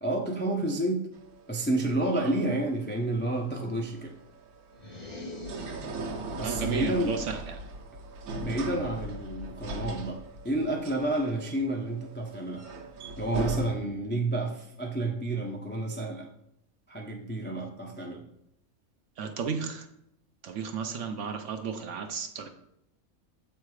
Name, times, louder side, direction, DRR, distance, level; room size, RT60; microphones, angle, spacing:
voice 1, 0.0-1.0 1.5-4.1 6.4-7.2 8.4-12.7 13.2-16.3 16.9-18.3, right 1 dB, 15° left, 1 dB, 0.3 m, -30 dB
sound 1, 1.1-13.7, right 2 dB, 85° right, 1.3 m, -39 dB
Monster Snort, 4.7-6.4, left 2 dB, 30° left, 1.9 m, -43 dB
voice 2, 6.4-7.5 19.2-19.9 20.4-22.5, right 6 dB, 65° right, 6 dB, 0.9 m, -33 dB
7.5 x 3.3 x 4.7 m, 0.78 s
omnidirectional pair, 1.5 m